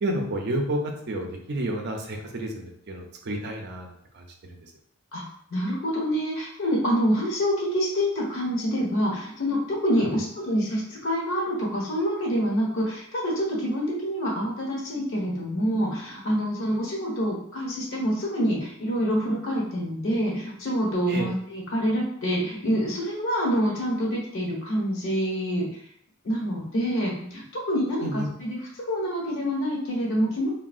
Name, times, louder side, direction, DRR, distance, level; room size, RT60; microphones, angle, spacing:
voice 1, 0.0-4.3 10.0-10.1 21.1-21.3 28.0-28.3, right 1 dB, 55° right, 2 dB, 0.5 m, -30 dB
voice 2, 5.5-25.7 26.2-30.5, equal, 65° left, -4 dB, 1.1 m, -26 dB
3.5 x 2.1 x 2.3 m, 0.66 s
head